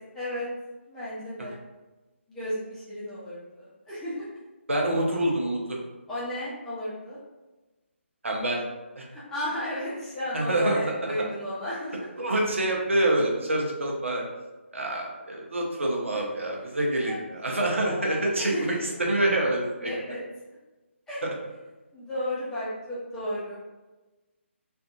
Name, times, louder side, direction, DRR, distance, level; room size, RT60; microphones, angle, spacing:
voice 1, 0.1-0.5 0.9-1.6 2.3-4.3 6.1-7.2 9.1-12.1 16.1-16.2 16.6-16.7 17.0-17.2 17.5-18.8 19.8-20.2 21.1-21.2 21.9-23.6, equal, 5° left, -11 dB, 0.7 m, -34 dB
voice 2, 4.7-5.8 8.2-8.6 9.0-9.1 10.3-11.1 12.2-14.3 14.7-18.5 19.0-19.9 21.2-21.3, right 1 dB, 70° right, -1 dB, 0.8 m, -26 dB
3.5 x 2.5 x 2.4 m, 1.1 s
figure-of-eight pair, 150°, 7 cm